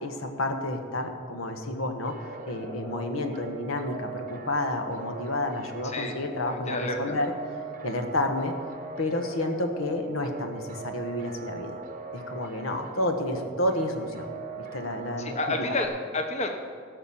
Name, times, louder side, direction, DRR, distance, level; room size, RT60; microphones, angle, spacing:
voice 1, 0.0-2.2 2.4-7.3 7.8-8.5 9.0-11.8 12.1-14.3 14.7-15.7, left 1 dB, 85° left, 5 dB, 1.3 m, -30 dB
sound 1, 2.0-15.9, right 3 dB, 40° right, 0.8 m, -41 dB
voice 2, 6.5-7.2 15.2-16.5, left 2 dB, 35° left, 4 dB, 0.9 m, -30 dB
17.0 x 5.9 x 7.2 m, 2.3 s
head